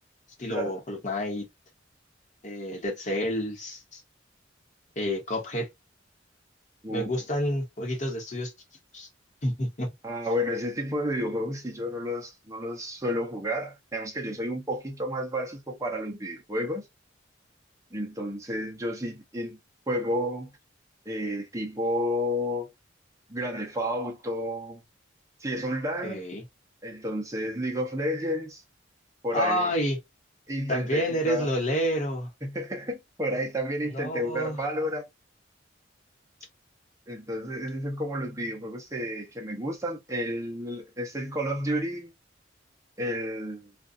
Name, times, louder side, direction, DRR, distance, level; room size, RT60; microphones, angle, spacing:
voice 1, 0.4-1.5 2.4-4.0 5.0-5.7 6.9-8.5 8.9-9.1 9.4-9.9 26.0-26.4 29.3-30.0 30.7-32.3 33.9-34.6, equal, 40° left, 1.0 m, -29 dB
voice 2, 10.0-16.8 17.9-19.6 19.9-20.5 21.1-22.7 23.3-24.8 25.4-26.2 26.8-28.6 29.2-29.7 30.5-31.5 32.4-35.0 37.1-42.1 43.0-43.7, equal, 15° right, 0.7 m, -31 dB
2.5 x 2.3 x 2.5 m
head